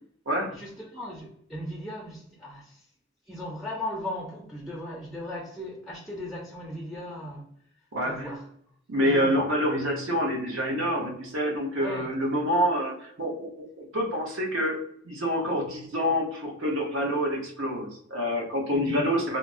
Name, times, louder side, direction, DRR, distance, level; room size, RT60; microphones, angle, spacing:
voice 1, 0.5-2.8 3.3-7.4 8.0-8.5 9.0-9.3 11.8-12.1 18.7-19.0, left 1 dB, ahead, -4 dB, 0.4 m, -37 dB
voice 2, 7.9-8.3 8.9-13.5 13.8-14.8 15.0-19.4, equal, 70° right, 0 dB, 0.8 m, -27 dB
3.2 x 2.0 x 2.5 m, 0.67 s
head